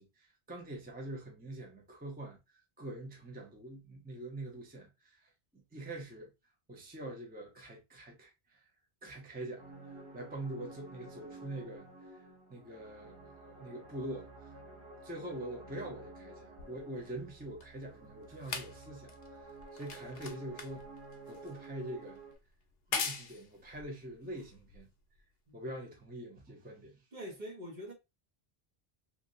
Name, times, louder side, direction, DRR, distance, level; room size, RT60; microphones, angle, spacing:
voice 1, 0.0-6.3 6.7-8.7 9.0-14.6 15.0-21.0 21.3-22.2 22.9-24.9 25.5-27.0, right 1 dB, 10° right, 0.6 m, -44 dB
sound 1, 9.6-22.4, right 2 dB, 90° right, 1.2 m, -52 dB
sound 2, 16.6-25.2 26.0-26.1, left 5 dB, 75° left, 0.8 m, -43 dB
voice 2, 27.1-27.9, equal, 50° right, 1.1 m, -44 dB
3.0 x 2.5 x 2.5 m
omnidirectional pair, 1.0 m